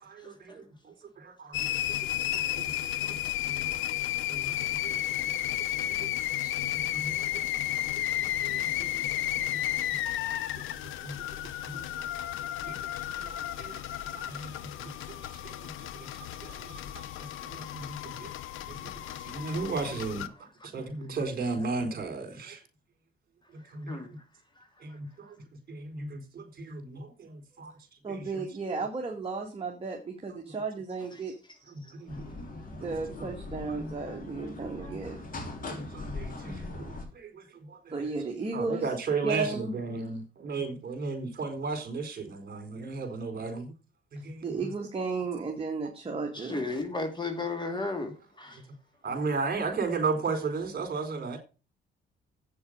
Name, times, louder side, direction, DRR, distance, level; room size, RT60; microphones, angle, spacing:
voice 1, 0.0-1.7 2.3-2.8 3.1-3.2 3.5-3.8 4.3-5.5 5.8-6.1 6.7-7.5 8.0-8.1 8.4-10.2 10.6-12.1 12.7-12.8 13.1-13.9 14.1-18.3 18.7-20.3 20.6-22.6 23.5-24.2 24.8-25.4 25.7-27.7 28.1-28.4 31.7-32.4 32.8-32.9 33.2-33.3 33.7-33.8 34.1-34.2 34.8-34.9 35.7-38.1 38.5-43.7 44.1-44.7 49.0-51.4, right 4 dB, 50° right, 4.1 m, -36 dB
sound 1, 1.5-20.3, left 12 dB, 85° left, 0.8 m, -33 dB
voice 2, 28.0-31.4 32.8-35.2 37.9-38.9 39.2-40.0 44.4-46.6, right 4 dB, 30° right, 2.1 m, -34 dB
sound 2, 32.1-37.1, left 2 dB, 45° left, 3.6 m, -40 dB
voice 3, 46.5-48.1 48.4-48.5, left 3 dB, 20° left, 2.5 m, -33 dB
8.7 x 6.8 x 6.5 m
cardioid pair, 90°, 20 cm